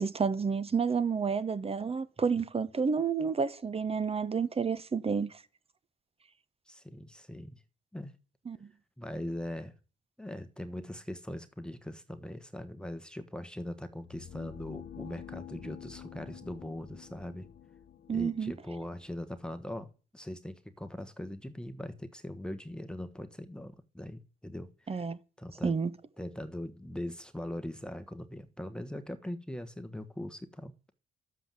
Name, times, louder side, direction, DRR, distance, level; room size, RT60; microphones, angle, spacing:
voice 1, 0.0-5.3 8.5-8.7 18.1-18.5 24.9-25.2 25.6-25.9, right 5 dB, 30° right, 1.1 m, -30 dB
voice 2, 6.7-7.6 7.9-8.1 9.0-9.7 10.2-17.5 18.1-25.1 25.4-25.8 26.2-30.7, left 1 dB, 5° left, 1.3 m, -41 dB
sound 1, 13.9-19.8, left 10 dB, 60° left, 1.2 m, -49 dB
12.0 x 8.0 x 7.6 m
cardioid pair, 90°, 20 cm